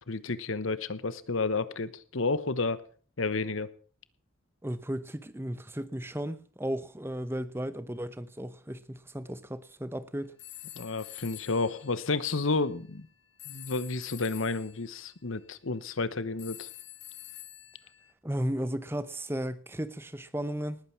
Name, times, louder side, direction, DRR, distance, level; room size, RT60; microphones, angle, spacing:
voice 1, 0.1-2.8 3.2-3.7 10.7-13.1 13.5-16.7, left 3 dB, 75° left, 1.1 m, -31 dB
voice 2, 4.6-10.3 18.2-20.8, right 1 dB, 10° right, 0.8 m, -35 dB
sound 1, 10.4-12.6 13.4-14.8 16.4-18.1, left 14 dB, 55° left, 2.2 m, -47 dB
19.5 x 9.0 x 6.0 m
head